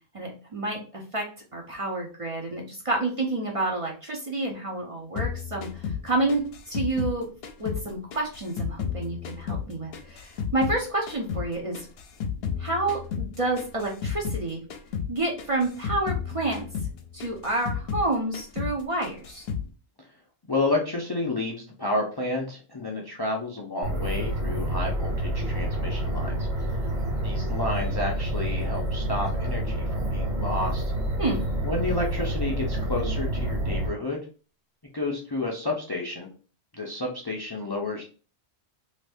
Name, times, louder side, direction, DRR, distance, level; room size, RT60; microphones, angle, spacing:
voice 1, 0.1-1.2 1.5-7.3 7.6-11.9 12.6-14.6 15.1-16.7 17.1-19.4 31.2-31.4, right 2 dB, 40° right, -1 dB, 0.6 m, -29 dB
sound 1, 5.2-10.8 11.1-14.4 14.7-15.1 15.4-18.1 18.3-18.8 19.0-19.7, left 7 dB, 70° left, 0.8 m, -32 dB
voice 2, 20.5-26.5 26.8-26.9 27.2-30.8 31.6-34.2 34.9-36.3 36.7-38.1, left 2 dB, 35° left, -1 dB, 0.4 m, -30 dB
sound 2, 23.8-33.9, right 1 dB, 65° right, 1.2 m, -28 dB
2.8 x 2.6 x 3.4 m, 0.37 s
omnidirectional pair, 1.1 m